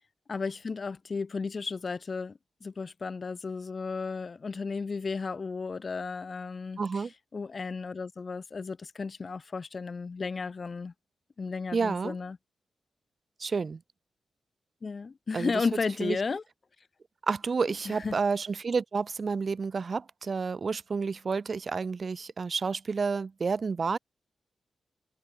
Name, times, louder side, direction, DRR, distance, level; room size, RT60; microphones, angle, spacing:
voice 1, 0.3-7.1 7.3-10.9 11.4-12.4 14.8-16.4 17.9-18.2, left 4 dB, 35° left, 0.7 m, -34 dB
voice 2, 6.8-7.1 11.7-12.2 13.4-13.8 15.3-15.6 16.0-16.2 17.2-24.0, right 5 dB, 40° right, 3.2 m, -30 dB
wide cardioid pair, 145°, 0 cm